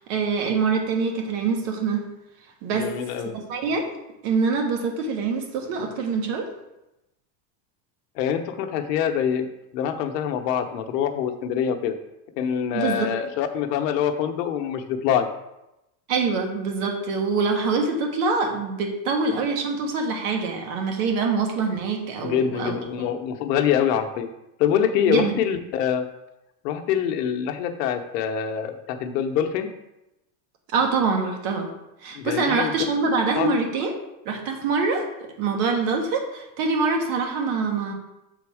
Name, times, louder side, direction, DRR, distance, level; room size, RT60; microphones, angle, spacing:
voice 1, 0.1-2.0 2.6-2.9 3.5-3.9 4.2-6.5 12.7-13.1 16.1-22.7 25.1-25.3 30.7-31.7 32.0-33.9 34.2-35.1 35.4-37.9, right 4 dB, 60° right, 3 dB, 1.5 m, -24 dB
voice 2, 2.7-3.4 8.2-11.9 12.4-15.3 22.2-24.3 24.6-26.1 26.6-29.7 32.1-32.7 33.3-33.5, left 8 dB, 80° left, 6 dB, 0.9 m, -25 dB
7.0 x 4.0 x 4.8 m, 0.92 s
supercardioid pair, 155°, 48 cm